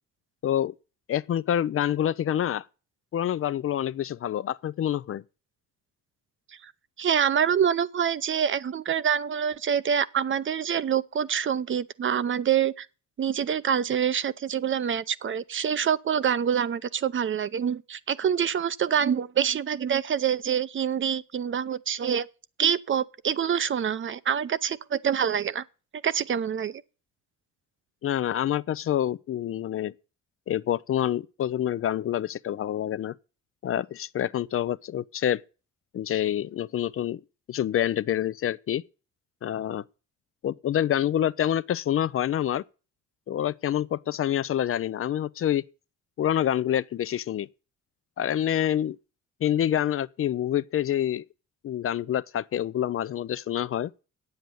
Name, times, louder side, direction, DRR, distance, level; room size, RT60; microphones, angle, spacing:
voice 1, 0.4-0.7 1.1-2.7 3.1-5.2 28.0-29.9 30.5-33.1 33.6-35.4 35.9-37.2 37.5-38.8 39.4-39.8 40.4-42.6 43.3-45.6 46.2-47.5 48.2-49.0 49.4-51.2 51.6-53.9, left 11 dB, 45° left, 0.5 m, -27 dB
voice 2, 7.0-12.9 13.2-22.3 22.6-25.6 26.0-26.8, right 8 dB, 40° right, 0.6 m, -26 dB
9.1 x 7.9 x 6.9 m
cardioid pair, 90°, 30 cm